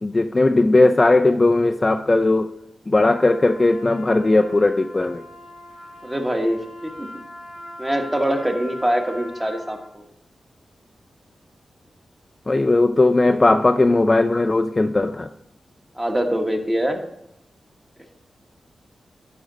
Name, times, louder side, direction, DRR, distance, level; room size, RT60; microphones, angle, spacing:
voice 1, 0.0-2.5 2.9-5.3 12.5-15.3, left 2 dB, 30° left, 0.3 m, -17 dB
Trumpet, 3.0-9.9, left 1 dB, 85° right, 2.3 m, -40 dB
voice 2, 6.0-7.1 7.8-10.1 15.9-17.0, equal, 15° right, 1.2 m, -24 dB
11.0 x 5.1 x 3.9 m
wide cardioid pair, 90°, 0 cm